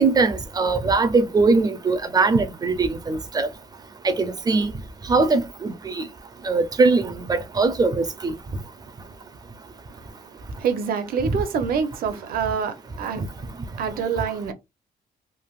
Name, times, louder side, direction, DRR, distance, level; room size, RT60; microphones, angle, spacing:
voice 1, 0.0-3.5 4.0-4.7 5.1-6.0 6.4-8.3, right 3 dB, 25° right, 0.4 m, -21 dB
voice 2, 10.6-13.2 13.8-14.5, right 6 dB, 65° right, 0.6 m, -26 dB
3.3 x 2.6 x 2.3 m
cardioid pair, 160°, 16 cm